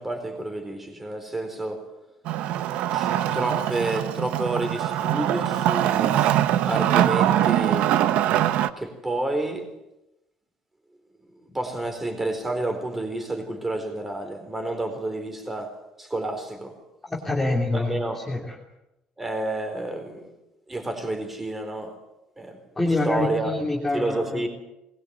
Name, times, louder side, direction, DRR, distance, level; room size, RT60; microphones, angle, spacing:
voice 1, 0.0-1.8 2.9-6.2 6.7-7.9 8.8-9.7 11.5-15.7 16.0-16.8 17.7-18.2 19.2-20.3 20.7-21.9 22.4-22.6 23.0-23.5 23.9-24.5, right 2 dB, 10° right, 6 dB, 4.2 m, -29 dB
Wood, 2.2-8.7, right 12 dB, 70° right, 1.1 m, -23 dB
voice 2, 17.1-17.9 18.3-18.5 22.8-24.4, left 2 dB, 10° left, -2 dB, 3.1 m, -25 dB
22.0 x 21.0 x 8.3 m, 0.92 s
cardioid pair, 170°, 2 cm